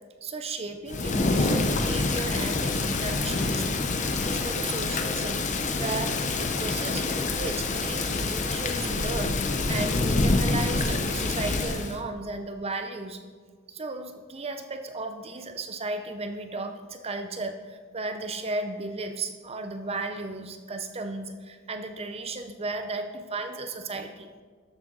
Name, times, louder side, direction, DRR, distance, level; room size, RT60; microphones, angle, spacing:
voice 1, 0.2-3.7 4.2-5.5 5.8-13.2 13.7-24.3, right 2 dB, 25° right, 7 dB, 0.5 m, -35 dB
Thunder / Rain, 0.9-12.0, left 3 dB, 35° left, 0.7 m, -26 dB
13.0 x 7.4 x 3.8 m, 1.5 s
head